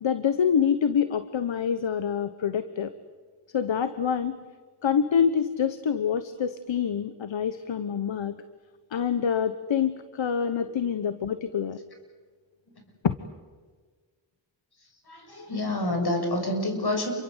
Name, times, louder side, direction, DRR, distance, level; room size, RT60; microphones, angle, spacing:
voice 1, 0.0-2.9 3.5-4.4 4.8-8.4 8.9-11.8 13.0-13.1, left 7 dB, 70° left, 12 dB, 1.2 m, -26 dB
voice 2, 15.1-17.1, left 1 dB, 50° left, 4 dB, 7.4 m, -28 dB
29.0 x 23.0 x 8.2 m, 1.5 s
cardioid pair, 55°, 48 cm